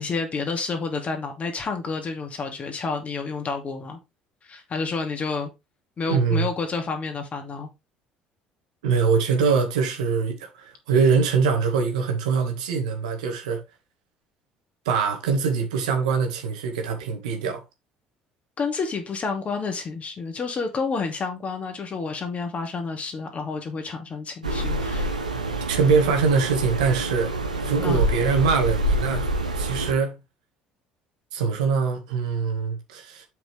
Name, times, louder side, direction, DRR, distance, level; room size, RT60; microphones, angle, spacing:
voice 1, 0.0-4.0 4.4-5.5 6.0-7.7 18.6-25.2 27.8-28.0, left 4 dB, 35° left, 2.6 m, -29 dB
voice 2, 6.1-6.5 8.8-13.6 14.9-17.6 25.7-27.3 27.6-29.3 29.5-30.2 31.3-33.3, right 5 dB, 75° right, 2.0 m, -23 dB
sound 1, 24.4-29.9, right 1 dB, 90° right, 1.1 m, -26 dB
7.9 x 5.8 x 3.5 m
figure-of-eight pair, 55°, 4 cm